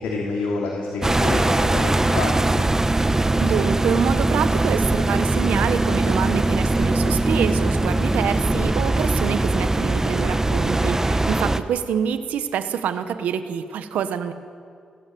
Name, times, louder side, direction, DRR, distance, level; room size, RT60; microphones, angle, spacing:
voice 1, 0.0-2.6, left 3 dB, 85° left, -2 dB, 2.9 m, -27 dB
sound 1, 1.0-11.6, right 2 dB, 20° right, 1.3 m, -21 dB
voice 2, 3.4-14.3, right 8 dB, 85° right, 10 dB, 1.1 m, -26 dB
29.5 x 11.5 x 7.7 m, 2.2 s
supercardioid pair, 50°, 3 cm